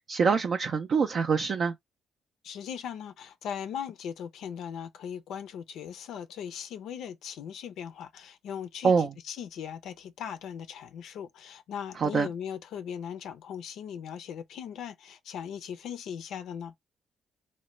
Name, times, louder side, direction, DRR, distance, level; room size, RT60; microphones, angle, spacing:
voice 1, 0.1-1.7 8.8-9.1 12.0-12.3, right 5 dB, 55° right, 0.3 m, -25 dB
voice 2, 2.4-16.7, left 8 dB, 80° left, 0.4 m, -39 dB
3.0 x 2.1 x 3.1 m
cardioid pair, 90°, 0 cm